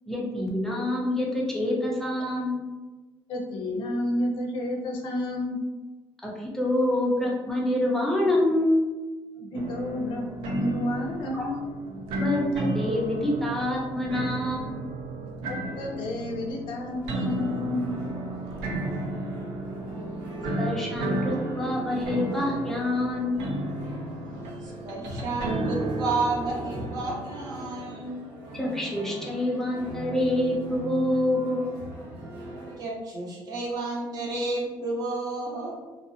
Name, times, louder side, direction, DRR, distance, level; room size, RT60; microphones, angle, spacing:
voice 1, 0.1-2.6 6.2-8.8 11.3-11.5 12.1-14.9 20.6-23.4 28.5-31.7, left 1 dB, 5° left, -4 dB, 0.5 m, -26 dB
voice 2, 3.3-5.6 9.4-11.7 15.5-17.9, left 1 dB, 65° left, 1 dB, 0.5 m, -30 dB
sound 1, 9.5-27.1, right 1 dB, 85° right, 0.4 m, -33 dB
sound 2, 16.8-32.8, right 2 dB, 65° right, 0.9 m, -40 dB
voice 3, 24.6-28.1 32.8-35.7, right 2 dB, 45° right, -3 dB, 0.7 m, -31 dB
2.5 x 2.0 x 2.6 m, 1.2 s
cardioid pair, 135°, 9 cm